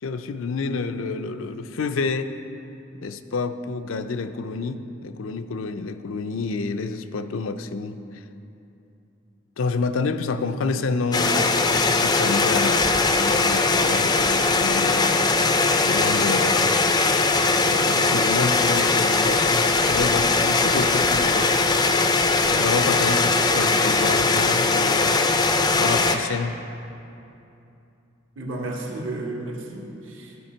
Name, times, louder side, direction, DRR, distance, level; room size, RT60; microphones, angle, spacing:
voice 1, 0.0-2.4 3.0-8.0 9.6-15.2 15.8-16.6 17.7-21.5 22.5-25.3 25.8-26.6, left 4 dB, 80° left, 9 dB, 0.5 m, -28 dB
sound 1, 11.1-26.2, left 3 dB, 20° left, 0.4 m, -20 dB
voice 2, 28.3-30.4, right 2 dB, 70° right, -1 dB, 1.3 m, -33 dB
15.0 x 5.1 x 4.4 m, 2.7 s
head